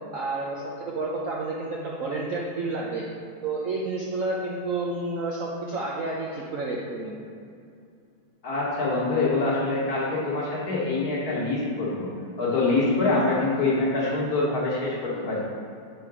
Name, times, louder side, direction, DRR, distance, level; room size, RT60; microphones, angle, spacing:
voice 1, 0.1-3.0 3.4-7.1, right 2 dB, 90° right, -4 dB, 0.7 m, -30 dB
voice 2, 8.4-12.1 12.4-15.4, left 3 dB, 45° left, -6 dB, 1.7 m, -25 dB
6.7 x 4.7 x 4.8 m, 2.4 s
omnidirectional pair, 2.4 m